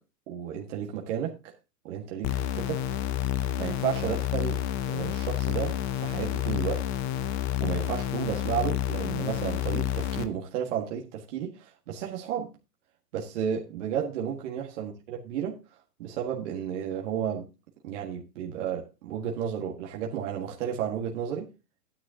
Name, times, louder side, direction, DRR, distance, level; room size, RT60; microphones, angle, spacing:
voice 1, 0.3-1.5 1.8-2.8 3.6-4.6 4.9-6.8 7.6-12.5 13.1-15.6 16.0-17.5 17.8-21.5, right 8 dB, 45° right, 1.8 m, -32 dB
sound 1, 2.2-10.2, left 11 dB, 20° left, 0.7 m, -29 dB
12.5 x 9.8 x 2.8 m
hypercardioid pair, 140°, 48 cm